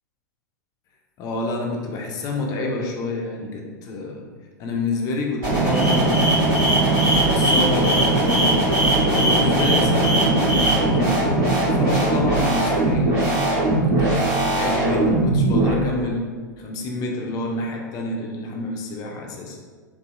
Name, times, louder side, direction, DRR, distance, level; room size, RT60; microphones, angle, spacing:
voice 1, 1.2-4.2 4.6-6.9 7.3-8.6 9.1-13.2 13.7-19.6, left 2 dB, 35° left, 1 dB, 0.5 m, -28 dB
sound 1, 5.4-15.7, right 2 dB, 50° right, 1.5 m, -20 dB
sound 2, 5.7-10.7, right 1 dB, 20° right, 0.8 m, -22 dB
3.0 x 2.6 x 2.4 m, 1.5 s
figure-of-eight pair, 95°, 10 cm